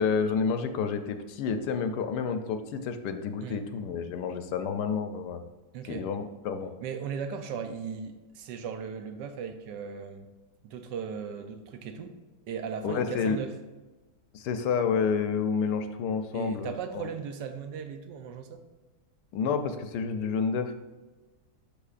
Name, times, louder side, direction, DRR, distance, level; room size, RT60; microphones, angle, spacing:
voice 1, 0.0-5.4 5.9-6.7 12.8-13.4 14.3-17.1 19.3-20.7, left 6 dB, 75° left, 7 dB, 1.2 m, -29 dB
voice 2, 5.7-6.1 6.8-10.3 10.6-12.2 12.5-13.5 16.3-18.6, right 6 dB, 80° right, 7 dB, 1.3 m, -37 dB
12.0 x 4.5 x 2.5 m, 1.2 s
omnidirectional pair, 1.9 m